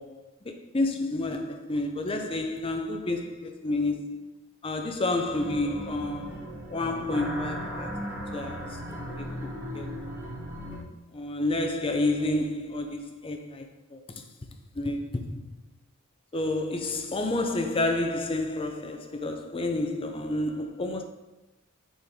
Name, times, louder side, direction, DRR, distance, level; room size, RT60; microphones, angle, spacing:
voice 1, 0.0-4.3 4.6-8.1 8.3-8.8 9.1-9.3 9.7-9.9 11.1-14.2 14.7-15.6 16.3-21.0, left 2 dB, 25° left, 0.6 m, -30 dB
sound 1, 5.3-10.8, equal, 10° right, 1.5 m, -37 dB
7.0 x 4.0 x 3.6 m
head